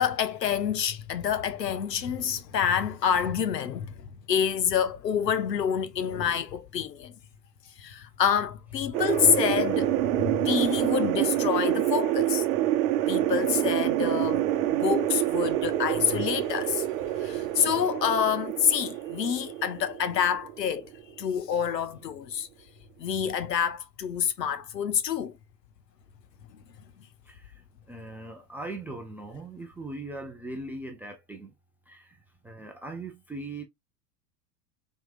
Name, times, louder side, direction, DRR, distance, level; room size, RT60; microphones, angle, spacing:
voice 1, 0.0-7.1 7.8-12.5 13.1-16.9 17.1-20.9 21.2-22.5 23.0-25.4, left 8 dB, 75° left, 0.9 m, -27 dB
sound 1, 8.9-21.3, right 14 dB, 55° right, 0.8 m, -27 dB
voice 2, 27.2-27.6 27.9-31.5 31.9-33.6, right 2 dB, 5° right, 0.3 m, -40 dB
4.6 x 3.6 x 2.4 m
figure-of-eight pair, 90°, 49 cm